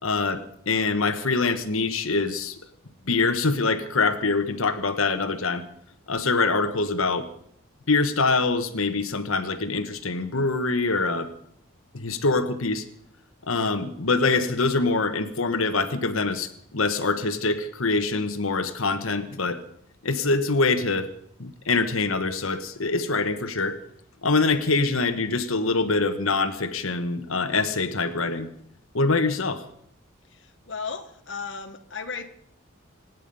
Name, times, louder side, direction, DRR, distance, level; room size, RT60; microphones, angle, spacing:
voice 1, 0.0-2.6 3.1-5.6 6.1-7.3 7.9-11.3 11.9-12.8 13.4-19.6 20.0-21.1 21.4-23.8 24.2-28.5 28.9-29.6, left 3 dB, 85° left, 9 dB, 1.4 m, -24 dB
voice 2, 30.2-32.3, left 5 dB, 60° left, 5 dB, 1.3 m, -35 dB
26.0 x 9.5 x 5.5 m, 0.68 s
head